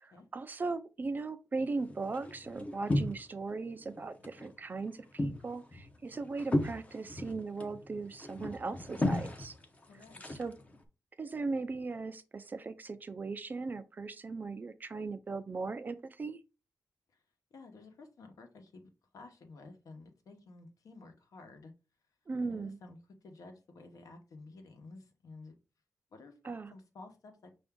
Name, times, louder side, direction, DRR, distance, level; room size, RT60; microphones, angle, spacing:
voice 1, 0.0-9.6 10.3-10.5 11.2-16.4 22.3-22.8 26.4-26.7, right 3 dB, 30° right, 0.3 m, -38 dB
sound 1, 1.6-3.5 3.8-4.5 4.8-10.8, left 1 dB, 25° left, 0.6 m, -35 dB
voice 2, 9.9-10.2 17.5-21.7 22.4-23.0 23.2-25.5 26.1-26.3 26.7-27.5, left 3 dB, 70° left, 1.0 m, -52 dB
5.7 x 2.6 x 3.6 m
wide cardioid pair, 175°, 6 cm